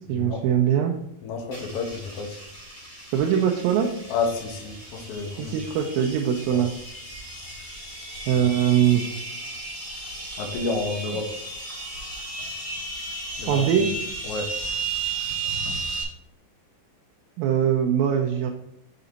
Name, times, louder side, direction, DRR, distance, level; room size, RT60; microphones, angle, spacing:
voice 1, 0.1-1.0 3.1-3.9 5.4-6.7 8.3-9.0 13.5-13.9 17.4-18.5, right 9 dB, 85° right, 1 dB, 2.4 m, -22 dB
voice 2, 1.2-2.4 4.1-5.5 6.5-6.6 8.3-8.4 10.4-11.3 13.4-13.6 14.2-14.5, left 4 dB, 85° left, 3 dB, 1.3 m, -30 dB
sound 1, 1.5-16.0, right 3 dB, 20° left, 2.1 m, -34 dB
6.8 x 5.0 x 4.0 m, 0.78 s
omnidirectional pair, 4.2 m